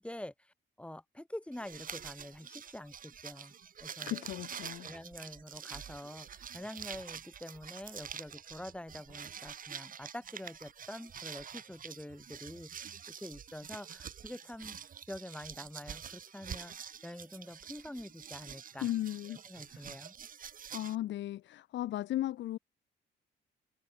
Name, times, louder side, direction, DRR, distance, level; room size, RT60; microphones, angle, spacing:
voice 1, 0.0-3.5 3.8-4.2 4.8-14.8 15.1-18.9 19.3-20.1, left 1 dB, 5° left, 2.4 m, -46 dB
sound 1, 1.5-20.9, right 8 dB, 45° right, 1.0 m, -47 dB
voice 2, 4.1-4.9 18.8-19.4 19.7-19.9 20.7-22.6, left 14 dB, 65° left, 0.5 m, -36 dB
cardioid pair, 90°, 20 cm